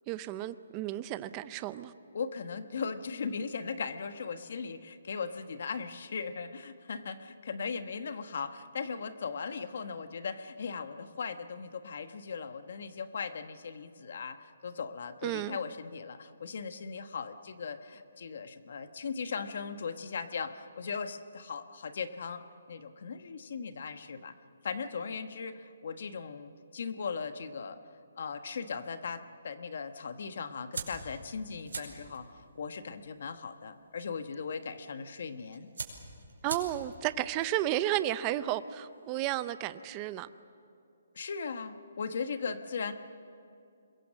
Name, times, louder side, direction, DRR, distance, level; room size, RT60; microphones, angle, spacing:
voice 1, 0.1-1.9 15.2-15.6 36.4-40.3, right 14 dB, 20° right, 0.5 m, -33 dB
voice 2, 2.1-22.4 22.7-24.3 24.6-27.8 28.2-35.7 41.1-42.9, left 5 dB, 50° left, 1.1 m, -38 dB
sound 1, 30.7-39.2, right 4 dB, 80° right, 5.2 m, -46 dB
27.0 x 22.0 x 7.5 m
hypercardioid pair, 170°, 0 cm